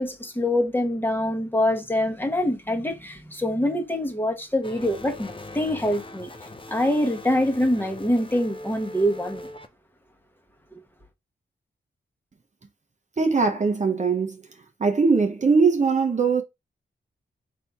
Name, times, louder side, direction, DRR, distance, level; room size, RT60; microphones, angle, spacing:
voice 1, 0.0-6.3 6.7-9.5 10.7-10.8, left 1 dB, 10° left, 1.0 m, -25 dB
sound 1, 4.6-9.7, left 1 dB, 25° left, 0.7 m, -40 dB
voice 2, 13.2-14.4 14.8-16.4, right 4 dB, 35° right, 0.8 m, -21 dB
4.3 x 2.7 x 3.5 m
cardioid pair, 65°, 20 cm